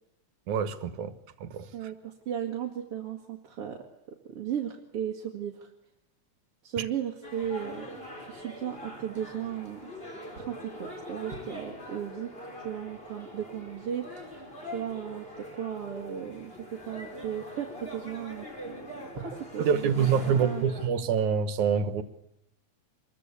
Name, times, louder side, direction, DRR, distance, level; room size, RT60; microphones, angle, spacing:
voice 1, 0.5-1.1 1.4-1.9 6.8-6.9 19.6-22.0, right 7 dB, 80° right, 12 dB, 2.8 m, -26 dB
voice 2, 1.7-3.9 4.3-5.7 6.6-9.9 10.4-20.6, right 9 dB, 50° right, 2 dB, 3.0 m, -36 dB
sound 1, 7.2-20.9, equal, 20° left, 4.6 m, -43 dB
25.5 x 22.0 x 8.3 m, 0.85 s
omnidirectional pair, 3.3 m